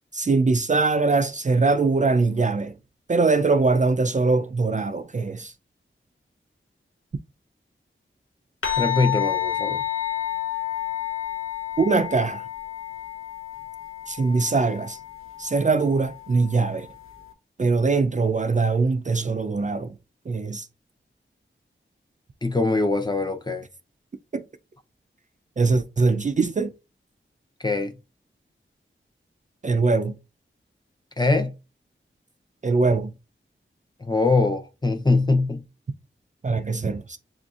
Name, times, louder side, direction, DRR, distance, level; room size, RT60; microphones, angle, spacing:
voice 1, 0.1-2.7 3.1-5.5 11.8-12.4 14.1-15.0 15.4-16.9 17.6-19.9 20.3-20.7 24.3-24.4 25.6-26.7 29.6-30.1 32.6-33.1 36.4-37.2, right 3 dB, 35° right, 0.4 m, -22 dB
sound 1, 8.6-17.3, left 12 dB, 85° left, 1.0 m, -31 dB
voice 2, 8.8-9.8 22.4-23.6 27.6-27.9 31.2-31.5 34.0-35.6, left 3 dB, 20° left, 0.6 m, -22 dB
7.6 x 2.6 x 2.4 m
wide cardioid pair, 85°, 21 cm